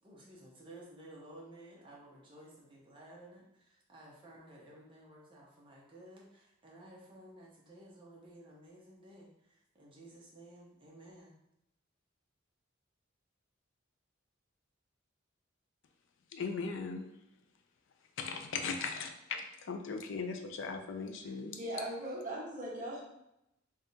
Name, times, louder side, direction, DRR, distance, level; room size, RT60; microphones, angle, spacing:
voice 1, 0.0-9.3 9.7-11.4, right 1 dB, 25° right, -4 dB, 0.9 m, -54 dB
voice 2, 16.3-17.0 18.2-21.6, left 5 dB, 65° left, 5 dB, 0.4 m, -38 dB
voice 3, 21.6-23.0, right 1 dB, 40° right, -4 dB, 1.1 m, -39 dB
3.5 x 3.3 x 2.7 m, 0.84 s
head